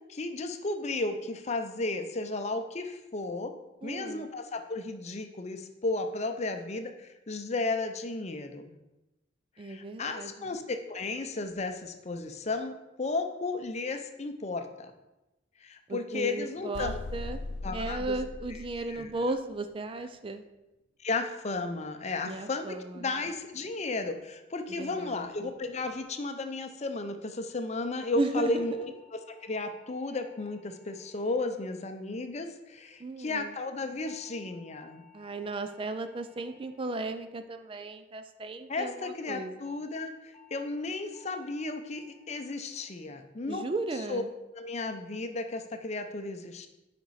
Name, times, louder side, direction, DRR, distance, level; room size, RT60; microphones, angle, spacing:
voice 1, 0.1-3.5 3.8-8.8 9.6-14.9 15.6-17.0 17.6-18.2 18.9-19.1 21.0-35.0 38.7-43.6 44.1-44.2 44.5-46.7, left 3 dB, 35° left, 7 dB, 0.6 m, -34 dB
voice 2, 3.8-4.3 9.6-10.6 15.9-17.4 17.7-20.4 22.2-23.1 24.7-25.5 28.2-28.8 33.0-33.5 35.1-39.5 43.5-44.3, right 2 dB, 30° right, 8 dB, 0.4 m, -35 dB
sound 1, 16.7-19.5, left 2 dB, 80° left, 0.5 m, -39 dB
sound 2, 28.4-32.9 34.0-38.5 39.6-39.9 40.3-40.7 41.1-41.5 41.9-42.3 42.7-43.1 43.5-43.9, left 8 dB, 5° left, 1.7 m, -61 dB
6.7 x 5.2 x 4.7 m, 0.97 s
head